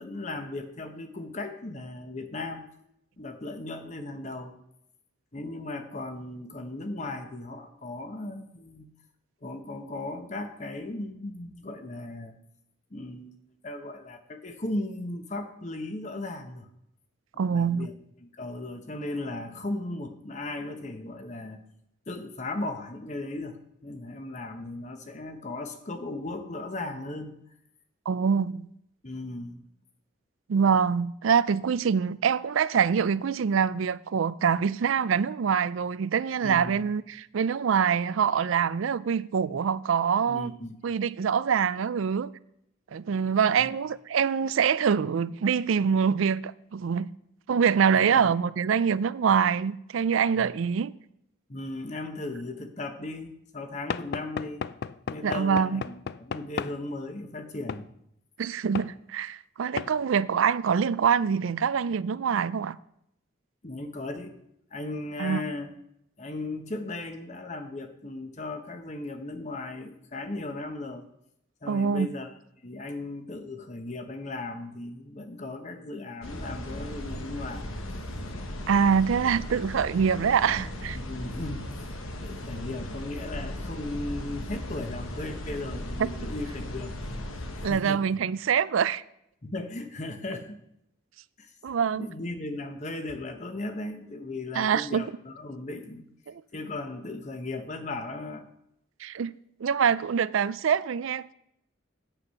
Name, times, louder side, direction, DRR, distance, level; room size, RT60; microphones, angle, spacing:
voice 1, 0.0-2.6 3.2-4.6 5.3-8.9 9.4-12.4 12.9-13.4 13.6-16.7 17.3-17.9 18.2-21.6 22.1-27.3 29.0-29.6 36.4-36.9 40.3-40.8 43.6-43.8 47.9-48.3 50.3-50.5 51.5-54.7 55.1-57.9 63.6-64.3 64.7-65.7 66.2-71.0 71.6-72.3 72.6-77.7 80.9-81.9 82.2-87.2 87.6-88.0 89.4-90.6 91.4-91.5 91.9-96.1 96.5-98.5, left 2 dB, 35° left, 1.0 m, -37 dB
voice 2, 17.4-17.9 28.1-28.7 30.5-40.5 40.8-42.3 42.9-47.1 47.5-50.9 55.2-55.8 58.4-62.8 65.2-65.4 71.7-72.1 78.7-81.0 87.6-89.0 91.6-92.1 94.6-95.0 96.3-96.4 99.0-99.3 99.6-101.3, right 6 dB, 75° right, 0.4 m, -25 dB
Knock / Wood, 53.9-56.8 57.7-57.9 58.8-58.9 59.8-60.0, left 6 dB, 50° left, 0.3 m, -34 dB
sound 1, 76.2-87.7, left 1 dB, 90° left, 1.2 m, -37 dB
9.1 x 7.9 x 5.6 m
head